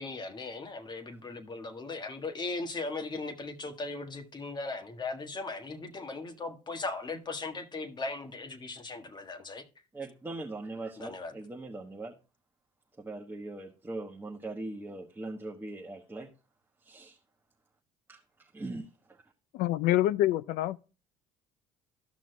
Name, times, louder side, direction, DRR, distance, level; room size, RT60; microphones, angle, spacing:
voice 1, 0.0-9.6 11.0-11.3, left 3 dB, 30° left, 1.5 m, -38 dB
voice 2, 9.9-12.2 13.0-16.3 16.8-17.2 18.1-19.2, right 2 dB, 15° right, 1.2 m, -41 dB
voice 3, 19.5-20.8, left 14 dB, 70° left, 0.5 m, -26 dB
14.0 x 6.1 x 2.2 m
supercardioid pair, 90°, 15 cm